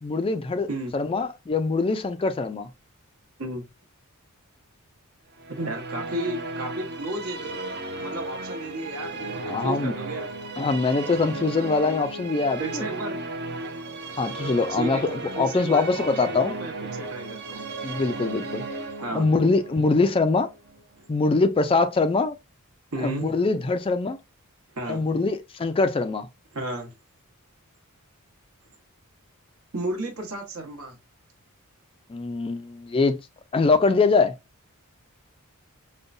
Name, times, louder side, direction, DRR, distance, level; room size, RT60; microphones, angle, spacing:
voice 1, 0.0-2.7 9.5-9.9 10.6-12.9 14.2-16.6 17.8-18.6 19.1-20.5 21.1-22.4 23.0-24.2 24.9-26.3 32.1-33.2 33.5-34.4, left 3 dB, 25° left, 0.3 m, -23 dB
Musical instrument, 5.4-20.8, right 2 dB, 50° right, 0.7 m, -35 dB
voice 2, 5.5-7.6 8.0-10.3 12.6-13.2 14.7-17.7 19.0-19.3 22.9-23.3 24.7-25.0 26.5-26.9 29.7-31.0, right 1 dB, 70° right, 1.2 m, -33 dB
5.3 x 2.2 x 2.5 m
head